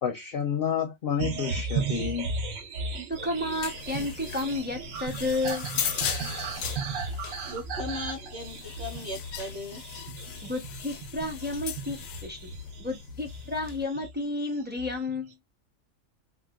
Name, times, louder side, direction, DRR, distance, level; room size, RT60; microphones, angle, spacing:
voice 1, 0.0-2.3, left 8 dB, 55° left, 0.6 m, -29 dB
sound 1, 1.2-14.3 14.6-15.3, right 4 dB, 75° right, 1.1 m, -36 dB
sound 2, 3.1-13.8, left 8 dB, 90° left, 1.0 m, -38 dB
voice 2, 3.1-5.7 10.4-12.5 12.8-15.3, left 2 dB, 10° right, 0.5 m, -32 dB
voice 3, 7.4-9.8, left 1 dB, 55° right, 2.0 m, -37 dB
3.9 x 2.2 x 2.3 m
omnidirectional pair, 1.4 m